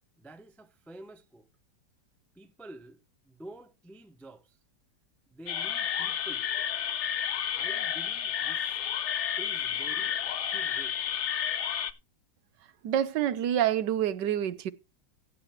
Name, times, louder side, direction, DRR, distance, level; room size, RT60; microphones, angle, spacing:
voice 1, 0.2-1.5 2.3-3.0 3.3-4.6 5.3-6.5 7.5-8.8 9.4-11.0, right 1 dB, ahead, 0.4 m, -49 dB
sound 1, 5.5-11.9, left 9 dB, 55° left, 0.8 m, -31 dB
voice 2, 12.8-14.7, right 10 dB, 75° right, 1.4 m, -27 dB
16.0 x 8.4 x 3.2 m
omnidirectional pair, 1.9 m